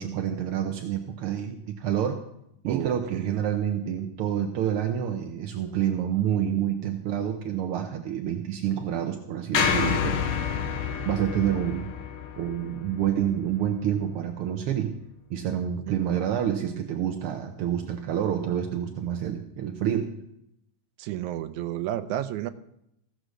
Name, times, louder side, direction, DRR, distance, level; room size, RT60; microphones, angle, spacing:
voice 1, 0.0-2.2 2.6-10.2 11.0-11.9 12.4-14.9 15.3-20.1, right 9 dB, 70° right, 5 dB, 1.3 m, -28 dB
voice 2, 2.7-3.4 6.5-6.6 15.9-16.0 21.0-22.5, right 12 dB, 85° right, 10 dB, 2.1 m, -32 dB
sound 1, 9.5-13.8, left 7 dB, 65° left, 1.5 m, -29 dB
15.5 x 6.4 x 6.4 m, 0.79 s
omnidirectional pair, 3.3 m